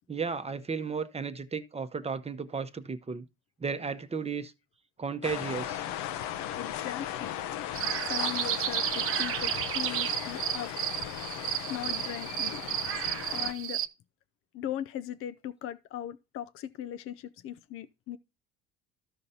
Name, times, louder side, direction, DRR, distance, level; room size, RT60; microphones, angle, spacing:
voice 1, 0.1-3.3 3.6-4.5 5.0-5.9, right 5 dB, 20° right, 0.9 m, -34 dB
sound 1, 5.2-13.5, left 11 dB, 70° left, 0.9 m, -37 dB
voice 2, 6.6-7.4 8.0-10.7 11.7-12.6 13.3-13.8 14.5-18.2, left 11 dB, 45° left, 0.5 m, -39 dB
sound 2, 7.7-13.9, right 11 dB, 45° right, 0.8 m, -32 dB
13.5 x 5.2 x 2.8 m
hypercardioid pair, 80°, 30 cm